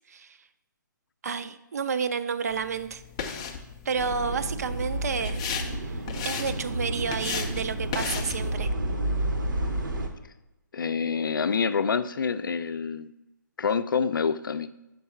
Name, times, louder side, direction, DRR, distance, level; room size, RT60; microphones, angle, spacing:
voice 1, 1.2-3.0 3.9-5.4 5.7-6.0 6.2-8.7, right 6 dB, 50° right, 12 dB, 0.4 m, -30 dB
sound 1, 2.5-8.6, left 6 dB, 15° left, 0.3 m, -36 dB
sound 2, 3.9-10.1, right 1 dB, 70° right, 1.0 m, -31 dB
voice 2, 10.7-13.1 13.6-14.7, left 6 dB, 85° left, 12 dB, 0.4 m, -27 dB
5.3 x 4.6 x 5.7 m, 0.95 s
hypercardioid pair, 165°, 11 cm